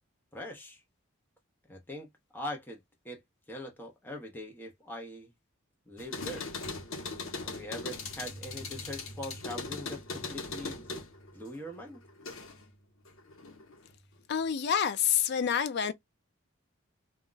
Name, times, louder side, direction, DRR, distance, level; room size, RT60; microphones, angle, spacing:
voice 1, 0.3-0.8 1.7-3.2 3.5-5.3 5.9-6.5 7.4-11.0 11.3-12.0, left 1 dB, 10° left, 0.7 m, -42 dB
sound 1, 6.0-12.7 13.1-13.9, left 3 dB, 80° left, 0.9 m, -40 dB
voice 2, 14.3-15.9, left 8 dB, 55° left, 0.4 m, -27 dB
2.3 x 2.1 x 3.7 m
head